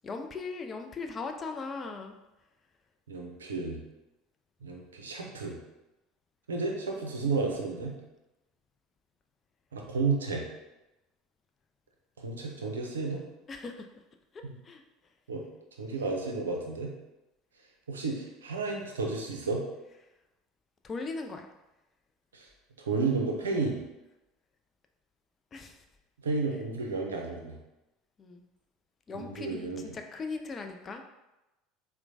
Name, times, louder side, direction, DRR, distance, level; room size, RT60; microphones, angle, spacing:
voice 1, 0.0-2.2 13.5-13.9 14.3-14.8 20.8-21.5 25.5-25.8 28.2-28.4 29.1-31.0, left 4 dB, 30° left, 5 dB, 0.4 m, -39 dB
voice 2, 3.1-3.8 4.6-5.5 6.5-7.9 9.7-10.5 12.2-13.2 14.4-14.5 15.3-15.4 15.8-16.9 17.9-19.6 22.3-22.5 22.8-23.8 26.2-27.5 29.1-29.9, right 3 dB, 85° right, 1 dB, 0.5 m, -32 dB
4.3 x 2.1 x 2.6 m, 0.99 s
hypercardioid pair, 70°, 0 cm